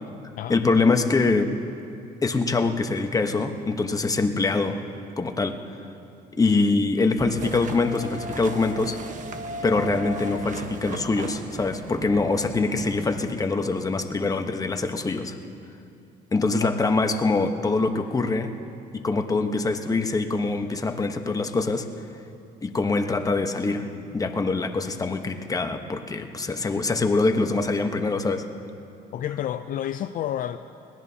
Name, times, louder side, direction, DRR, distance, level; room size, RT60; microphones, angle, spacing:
voice 1, 0.5-1.5 2.2-4.8 5.2-5.6 6.4-9.0 9.6-15.4 16.3-18.5 18.9-21.9 22.6-23.9 24.1-28.5, left 3 dB, 20° left, 6 dB, 1.0 m, -24 dB
sound 1, 7.2-13.2, right 2 dB, 50° right, 1.1 m, -36 dB
voice 2, 29.1-30.6, left 11 dB, 55° left, 10 dB, 0.4 m, -30 dB
22.0 x 18.5 x 2.8 m, 2.6 s
cardioid pair, 110°, 17 cm